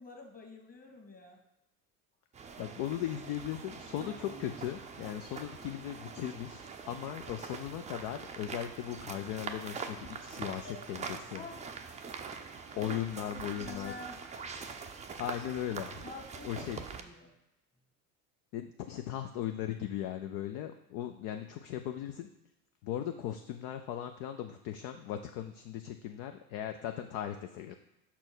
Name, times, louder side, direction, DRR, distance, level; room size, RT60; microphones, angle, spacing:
voice 1, 0.0-1.4 10.4-10.8 11.3-11.7 12.7-12.9 13.3-14.2 16.0-17.3, left 3 dB, 20° left, 1 dB, 1.8 m, -48 dB
sound 1, 2.3-17.0, right 5 dB, 15° right, 0.5 m, -44 dB
voice 2, 2.6-11.4 12.8-13.9 15.2-16.0 16.4-16.8 18.5-22.3 22.8-27.7, left 11 dB, 45° left, 7 dB, 0.6 m, -38 dB
5.6 x 4.3 x 6.1 m, 0.92 s
figure-of-eight pair, 70°, 46 cm